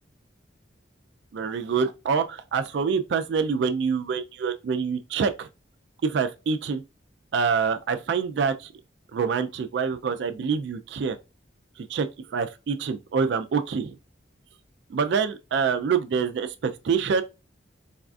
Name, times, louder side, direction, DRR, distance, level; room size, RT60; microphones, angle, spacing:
voice 1, 1.3-5.5 6.0-6.8 7.3-8.7 9.1-11.2 11.8-14.0 14.9-17.2, right 5 dB, 65° right, 0.3 m, -26 dB
4.1 x 2.3 x 2.4 m
head